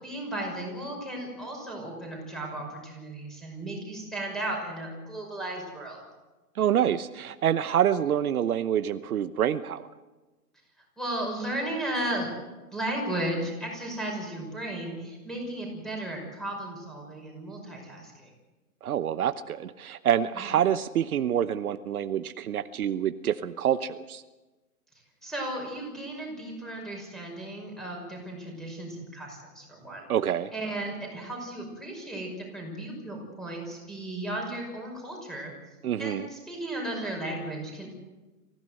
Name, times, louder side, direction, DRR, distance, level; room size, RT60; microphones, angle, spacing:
voice 1, 0.0-6.0 11.0-12.3 12.7-18.3 20.3-20.5 25.2-30.1 30.5-35.5 36.0-37.9, right 1 dB, ahead, 0 dB, 5.9 m, -35 dB
voice 2, 6.6-9.9 18.8-24.2 30.1-30.5 35.8-36.3, right 10 dB, 65° right, 11 dB, 1.0 m, -27 dB
25.0 x 16.0 x 7.8 m, 1.2 s
hypercardioid pair, 150°, 46 cm